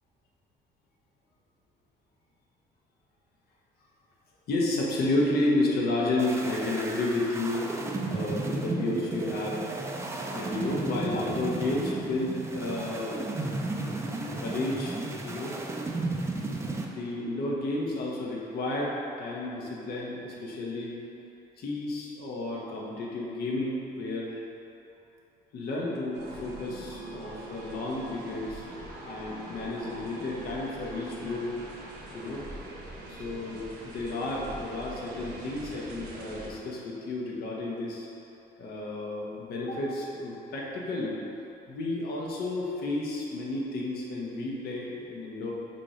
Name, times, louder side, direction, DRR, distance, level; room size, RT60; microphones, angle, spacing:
voice 1, 4.5-7.7 8.1-9.6 10.3-13.3 14.4-15.0 15.2-15.5 16.9-20.9 21.6-24.4 25.5-28.6 29.0-31.6 32.1-32.4 33.1-38.1 38.6-41.2 41.7-45.5, left 2 dB, 70° left, -4 dB, 1.4 m, -31 dB
sound 1, 6.2-16.9, right 2 dB, 15° right, 0.6 m, -34 dB
sound 2, 26.1-36.5, right 1 dB, 80° right, 1.3 m, -43 dB
6.1 x 4.5 x 5.0 m, 2.9 s
cardioid pair, 110°, 17 cm